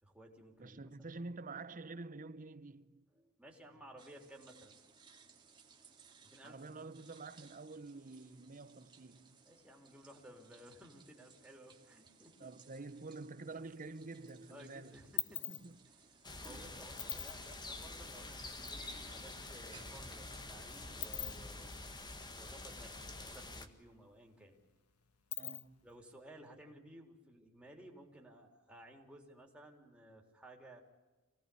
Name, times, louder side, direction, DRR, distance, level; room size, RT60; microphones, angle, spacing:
voice 1, 0.0-1.2 3.1-4.7 6.2-6.6 9.5-12.3 14.5-16.1 16.4-21.8 22.4-24.5 25.8-30.8, right 1 dB, 5° right, 3.7 m, -57 dB
voice 2, 0.6-3.0 6.4-9.4 12.4-15.0 15.5-15.8 16.4-16.7 25.4-25.9, right 3 dB, 40° right, 0.9 m, -48 dB
sound 1, 4.0-22.9, right 5 dB, 20° right, 2.3 m, -64 dB
sound 2, 13.5-14.3 14.6-18.8 19.1-19.2 19.4-23.3 23.6-23.7 24.0-25.9, left 13 dB, 90° left, 1.5 m, -44 dB
sound 3, 16.2-23.7, left 2 dB, 20° left, 1.6 m, -47 dB
26.0 x 18.0 x 8.6 m
head